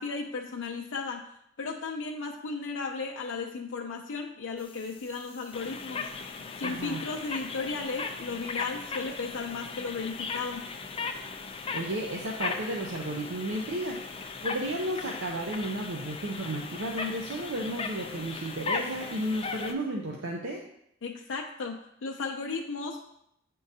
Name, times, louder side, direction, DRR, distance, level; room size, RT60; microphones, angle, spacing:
voice 1, 0.0-6.1 6.6-10.6 21.0-21.7 22.0-23.1, left 4 dB, 75° left, 0 dB, 0.5 m, -35 dB
sound 1, 4.6-19.7, left 4 dB, 30° left, 0.4 m, -38 dB
voice 2, 6.6-7.0 11.7-14.0 14.4-20.6, right 1 dB, 75° right, 0 dB, 0.7 m, -33 dB
9.4 x 3.7 x 2.7 m, 0.76 s
head